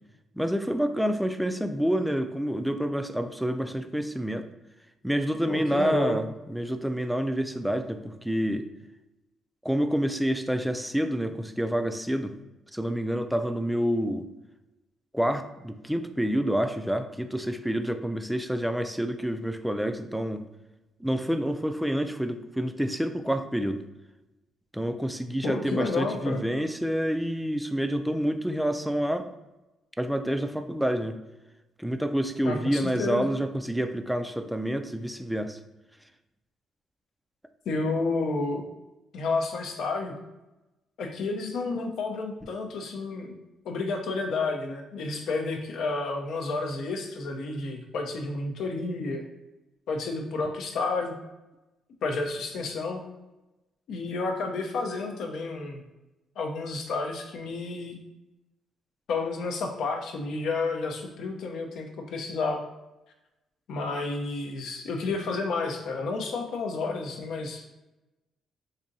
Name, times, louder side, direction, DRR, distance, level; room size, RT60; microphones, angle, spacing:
voice 1, 0.4-4.5 5.0-8.7 9.6-12.4 12.7-14.3 15.1-20.4 21.0-23.8 24.7-29.3 30.0-31.2 31.8-35.6, equal, ahead, 7 dB, 0.3 m, -28 dB
voice 2, 5.5-6.2 25.4-26.4 32.4-33.3 37.7-38.6 39.1-40.1 41.0-43.3 43.6-49.2 49.9-51.2 52.0-53.0 53.9-55.8 56.4-58.0 59.1-62.6 63.7-67.6, left 3 dB, 75° left, 3 dB, 0.6 m, -30 dB
4.1 x 2.6 x 2.6 m, 1.0 s
cardioid pair, 90°, 0 cm